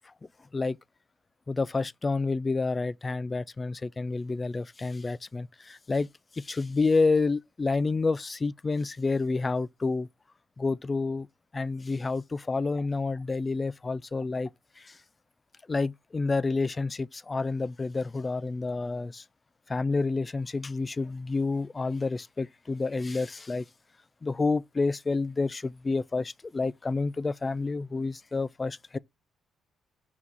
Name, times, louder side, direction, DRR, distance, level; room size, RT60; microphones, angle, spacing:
voice 1, 1.5-6.1 6.3-10.1 10.6-11.3 11.5-14.5 14.8-15.0 15.7-19.2 19.7-23.7 24.2-29.0, left 3 dB, 25° left, 0.4 m, -29 dB
5.6 x 4.1 x 4.6 m
cardioid pair, 90°, 0 cm